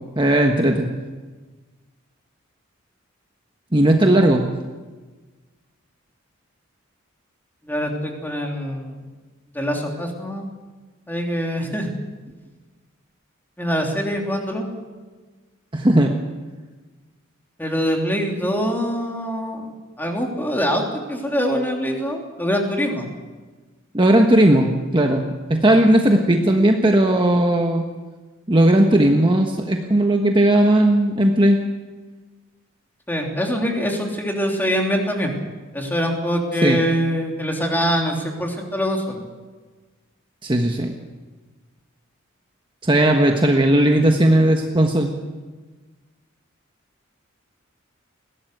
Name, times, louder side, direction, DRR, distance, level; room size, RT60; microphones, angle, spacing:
voice 1, 0.2-0.9 3.7-4.4 15.7-16.1 23.9-27.8 28.5-31.6 36.6-36.8 40.4-40.9 42.8-45.1, right 1 dB, 25° right, 2 dB, 1.3 m, -16 dB
voice 2, 7.7-9.1 9.5-10.5 11.1-11.9 13.6-14.7 17.6-19.7 20.0-23.1 33.1-35.3 35.7-39.3, equal, 10° left, 1 dB, 3.2 m, -24 dB
21.5 x 17.0 x 8.1 m, 1.3 s
head